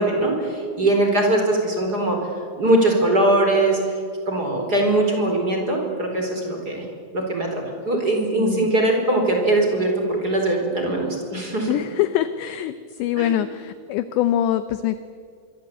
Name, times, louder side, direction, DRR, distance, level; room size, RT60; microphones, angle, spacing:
voice 1, 0.0-2.2 2.6-4.0 4.3-6.8 7.1-11.8 13.2-13.3, right 2 dB, 20° right, 2 dB, 4.3 m, -21 dB
voice 2, 8.4-8.7 11.7-15.0, left 12 dB, 80° left, 12 dB, 2.6 m, -24 dB
25.5 x 23.5 x 8.7 m, 2.2 s
omnidirectional pair, 6.0 m